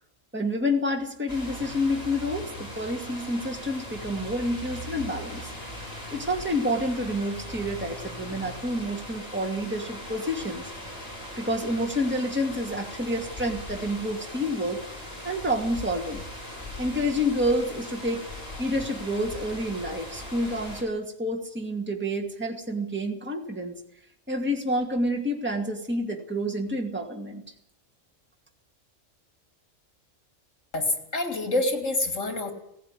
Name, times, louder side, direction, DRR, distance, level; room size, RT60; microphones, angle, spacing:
voice 1, 0.3-5.5 6.1-10.7 11.4-16.2 16.8-18.3 18.6-23.8 24.3-27.4, equal, 10° right, 2 dB, 2.2 m, -29 dB
sound 1, 1.3-20.8, left 1 dB, 30° left, 7.6 m, -39 dB
voice 2, 30.7-32.5, left 2 dB, 70° left, 6 dB, 3.1 m, -27 dB
17.5 x 15.5 x 9.8 m, 0.74 s
omnidirectional pair, 1.3 m